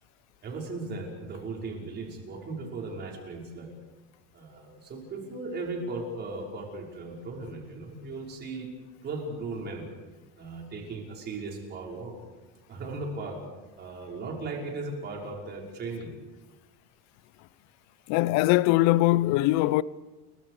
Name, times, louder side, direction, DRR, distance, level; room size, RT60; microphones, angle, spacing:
voice 1, 0.4-3.7 4.3-8.7 9.0-9.9 10.4-12.2 12.7-13.4 13.8-16.2, right 3 dB, 30° right, 5.5 m, -37 dB
voice 2, 18.1-19.8, left 18 dB, 50° left, 0.7 m, -21 dB
30.0 x 23.0 x 5.0 m
cardioid pair, 155°, 36 cm